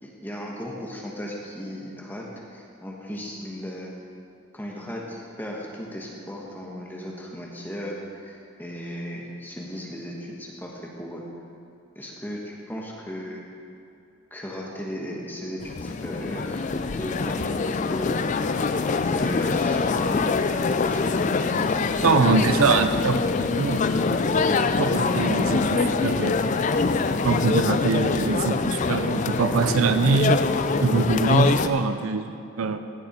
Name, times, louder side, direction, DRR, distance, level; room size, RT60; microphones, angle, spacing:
voice 1, 0.0-3.9 4.5-11.2 11.9-13.4 14.3-20.4 20.9-22.1 22.4-22.8, equal, 10° left, -2 dB, 1.2 m, -36 dB
sound 1, 15.6-31.7, left 4 dB, 35° left, 0.3 m, -24 dB
voice 2, 22.0-26.6 27.2-30.5 30.8-32.8, right 4 dB, 80° right, 10 dB, 0.5 m, -24 dB
16.0 x 6.7 x 4.3 m, 2.6 s
head